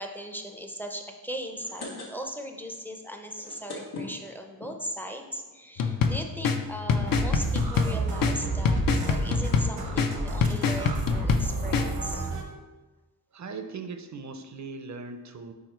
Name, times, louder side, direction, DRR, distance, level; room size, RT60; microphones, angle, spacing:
voice 1, 0.0-8.8 9.1-12.3, equal, 5° left, 4 dB, 0.5 m, -38 dB
sound 1, 1.4-2.5 2.8-2.9 3.2-4.7 5.4-5.5 5.8-5.9 6.0-6.3, left 3 dB, 90° left, 1.2 m, -40 dB
sound 2, 5.8-11.9, left 5 dB, 65° left, 0.5 m, -26 dB
sound 3, 7.1-12.4, right 3 dB, 80° right, 1.0 m, -31 dB
voice 2, 13.3-15.5, right 4 dB, 50° right, 8 dB, 0.5 m, -39 dB
4.7 x 4.7 x 4.4 m, 1.2 s
wide cardioid pair, 130°, 36 cm